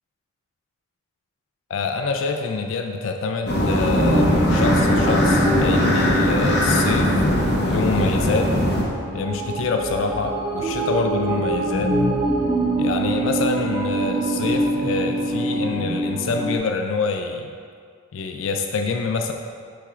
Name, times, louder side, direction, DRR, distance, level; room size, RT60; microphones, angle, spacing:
voice 1, 1.7-7.1 7.7-8.6 9.1-12.0 12.8-17.5 18.1-19.3, left 4 dB, 70° left, 5 dB, 0.4 m, -26 dB
sound 1, 3.5-8.8, left 1 dB, 55° left, 1.0 m, -20 dB
sound 2, 3.9-16.6, right 1 dB, 25° right, 0.7 m, -24 dB
7.0 x 5.9 x 2.4 m, 2.1 s
head